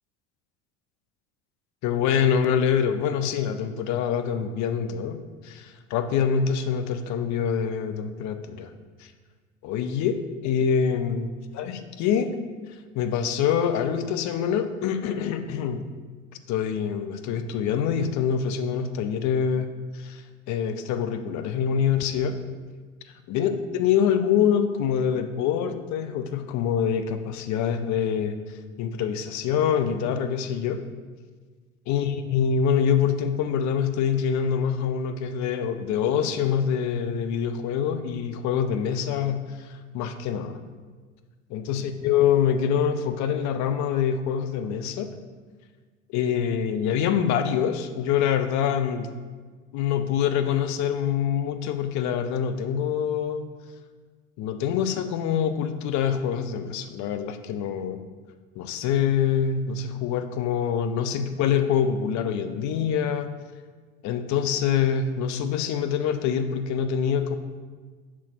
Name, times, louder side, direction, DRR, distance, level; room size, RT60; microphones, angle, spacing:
voice 1, 1.8-8.7 9.0-9.1 9.6-11.3 11.5-12.4 12.9-15.8 16.5-22.4 23.3-30.8 31.9-40.6 41.5-45.1 46.1-49.1 49.7-53.5 54.4-58.0 58.6-63.3 64.0-67.4, left 8 dB, 50° left, 9 dB, 0.6 m, -25 dB
6.0 x 4.0 x 4.3 m, 1.4 s
hypercardioid pair, 70°, 38 cm